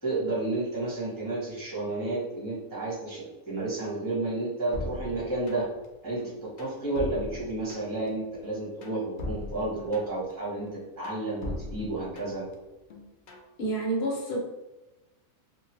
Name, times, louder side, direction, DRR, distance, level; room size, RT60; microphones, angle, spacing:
voice 1, 0.0-5.7 6.0-12.4, right 2 dB, 15° right, -7 dB, 1.2 m, -31 dB
sound 1, 4.7-5.9 6.2-8.1 8.4-10.3 10.7-12.5 12.9-13.5, left 1 dB, 80° left, 0.4 m, -39 dB
voice 2, 13.6-14.4, right 2 dB, 55° left, -1 dB, 0.9 m, -28 dB
2.8 x 2.4 x 2.9 m, 1.0 s
omnidirectional pair, 1.4 m